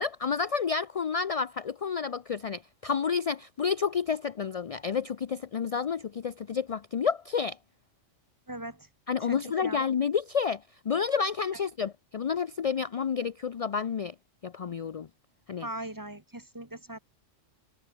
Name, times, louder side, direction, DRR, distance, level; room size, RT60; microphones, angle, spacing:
voice 1, 0.0-7.6 9.1-14.1 14.4-15.1 15.5-15.7, left 6 dB, 55° left, 0.4 m, -30 dB
voice 2, 8.5-8.9 9.2-9.8 15.6-17.0, right 1 dB, 15° right, 1.6 m, -40 dB
omnidirectional pair, 1.3 m